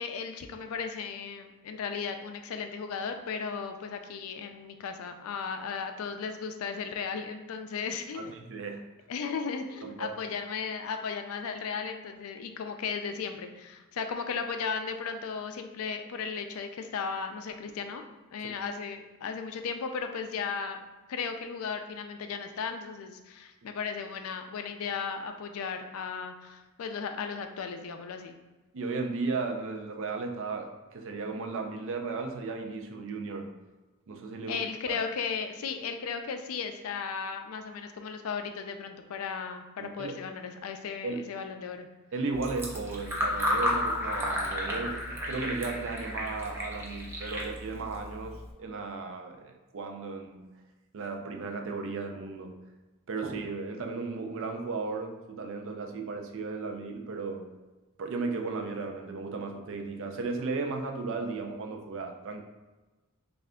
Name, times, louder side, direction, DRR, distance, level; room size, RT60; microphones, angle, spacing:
voice 1, 0.0-8.3 9.1-18.0 18.3-20.8 21.1-28.3 34.5-41.9, left 5 dB, 70° left, 6 dB, 0.4 m, -35 dB
voice 2, 8.1-8.9 9.8-10.1 18.4-18.5 28.7-33.5 34.1-35.0 39.8-40.2 41.0-41.2 42.1-50.5 50.9-52.6 53.1-57.5 58.0-62.4, right 3 dB, 60° right, 3 dB, 0.5 m, -35 dB
Fill (with liquid), 42.3-48.5, left 1 dB, 10° right, 0.5 m, -33 dB
3.2 x 2.4 x 3.6 m, 1.2 s
head